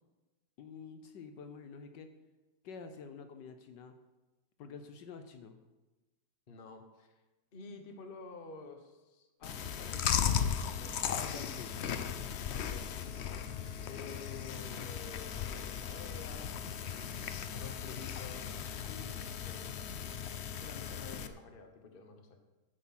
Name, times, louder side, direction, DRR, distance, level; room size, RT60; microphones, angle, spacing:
voice 1, 0.6-2.1 2.6-3.9 4.6-5.6 11.2-11.8 18.8-19.2, left 5 dB, 75° left, 8 dB, 1.4 m, -48 dB
voice 2, 6.5-7.1 7.5-10.9 11.2-11.7 12.5-13.1 13.9-18.5 19.1-19.6 20.6-22.4, left 4 dB, 35° left, 5 dB, 1.2 m, -50 dB
Chewing mastication, 9.4-21.3, left 8 dB, 90° left, 0.5 m, -37 dB
10.0 x 8.3 x 5.9 m, 1.1 s
omnidirectional pair, 2.0 m